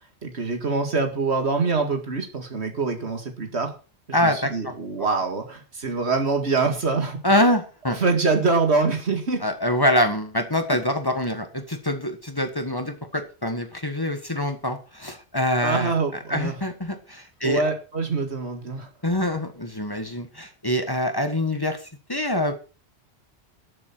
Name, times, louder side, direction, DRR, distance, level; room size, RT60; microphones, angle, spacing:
voice 1, 0.2-3.7 4.2-7.2 7.9-9.4 15.6-16.5 17.4-18.9, right 4 dB, 80° right, 5 dB, 2.4 m, -24 dB
voice 2, 4.1-4.7 7.2-8.0 9.4-15.9 16.3-17.6 19.0-21.8 22.1-22.6, left 1 dB, 20° left, 7 dB, 1.5 m, -25 dB
12.0 x 7.7 x 6.1 m, 0.35 s
omnidirectional pair, 1.1 m